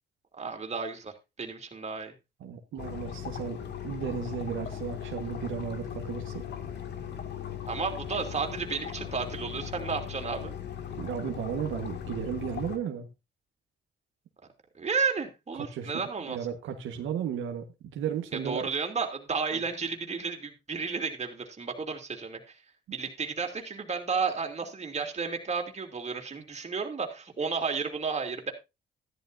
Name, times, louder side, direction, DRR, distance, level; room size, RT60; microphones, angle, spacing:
voice 1, 0.4-2.1 7.7-10.5 14.7-16.4 18.4-22.6 22.9-28.5, right 5 dB, 35° right, 3 dB, 2.8 m, -32 dB
voice 2, 2.4-6.5 11.0-13.1 15.7-16.0 16.3-18.7, right 8 dB, 80° right, 4 dB, 1.4 m, -34 dB
sound 1, 2.8-12.8, left 9 dB, 60° left, 2.2 m, -38 dB
13.5 x 11.5 x 2.6 m, 0.26 s
cardioid pair, 90°, 20 cm